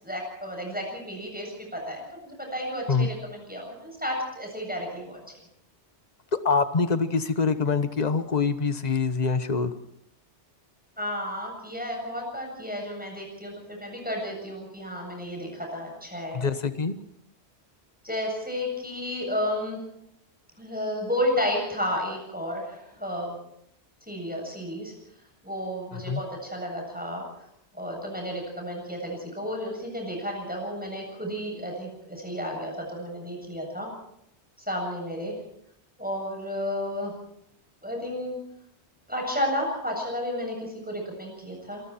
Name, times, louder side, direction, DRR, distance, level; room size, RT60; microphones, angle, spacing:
voice 1, 0.0-5.2 11.0-16.5 18.0-19.8 20.6-23.4 24.1-24.9 25.4-27.2 27.7-33.9 34.7-35.3 36.0-37.1 37.8-38.4 39.1-41.8, equal, 10° right, 0 dB, 7.7 m, -32 dB
voice 2, 6.3-9.7 16.3-17.0 25.9-26.2, left 4 dB, 40° left, 10 dB, 1.4 m, -25 dB
27.0 x 21.5 x 4.5 m, 0.75 s
omnidirectional pair, 1.1 m